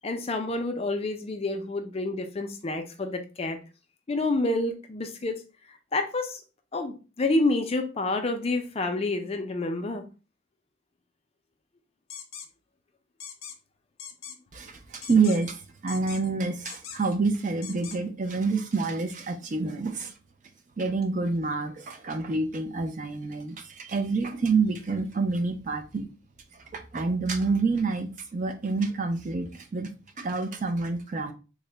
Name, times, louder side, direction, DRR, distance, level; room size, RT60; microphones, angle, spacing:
voice 1, 0.0-3.6 4.1-5.4 5.9-6.4 6.7-10.0, left 2 dB, 30° left, 0.4 m, -28 dB
sound 1, 12.1-12.5 13.2-13.6 14.0-14.4 15.0-15.5 15.9-16.3 16.6-17.1 17.6-18.0, left 8 dB, 75° left, 0.6 m, -41 dB
voice 2, 14.5-20.1 20.8-26.1 26.5-29.9 30.2-31.3, right 4 dB, 35° right, 0.4 m, -28 dB
3.7 x 2.1 x 3.2 m
head